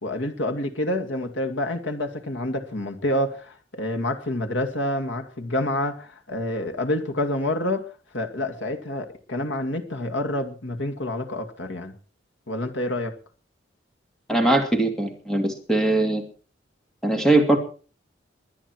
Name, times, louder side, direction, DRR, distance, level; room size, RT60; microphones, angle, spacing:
voice 1, 0.0-11.9 12.5-13.1, left 1 dB, 75° left, 2.2 m, -28 dB
voice 2, 14.3-16.2 17.0-17.6, right 2 dB, 5° left, 2.7 m, -21 dB
22.0 x 9.9 x 4.7 m
head